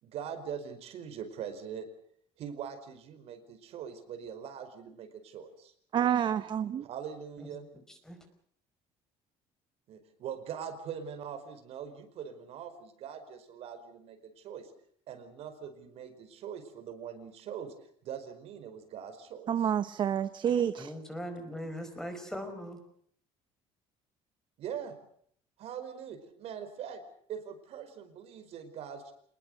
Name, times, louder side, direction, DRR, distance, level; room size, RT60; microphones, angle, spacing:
voice 1, 0.0-1.8 2.4-5.7 6.8-7.6 9.9-14.7 15.1-17.7 18.0-19.5 24.6-25.0 25.6-27.0 27.3-29.1, right 8 dB, 55° right, 9 dB, 4.9 m, -42 dB
voice 2, 5.9-6.9 19.5-20.9, right 9 dB, 40° right, 13 dB, 0.9 m, -28 dB
voice 3, 20.8-22.8, equal, 5° left, 7 dB, 5.0 m, -40 dB
27.0 x 20.5 x 6.5 m, 0.63 s
cardioid pair, 140°, 12 cm